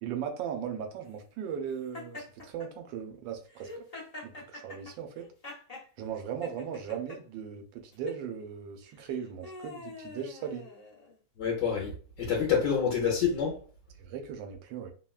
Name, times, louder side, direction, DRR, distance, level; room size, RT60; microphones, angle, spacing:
voice 1, 0.0-3.8 4.2-5.3 6.0-10.7 14.0-14.9, right 8 dB, 90° right, 1.3 m, -38 dB
Laughter, 1.9-2.7 3.5-5.9 6.4-7.2 7.9-8.2 8.9-11.2, left 2 dB, 50° left, 0.4 m, -45 dB
voice 2, 11.4-13.6, left 6 dB, 75° left, 1.3 m, -27 dB
3.4 x 2.1 x 2.3 m
omnidirectional pair, 1.9 m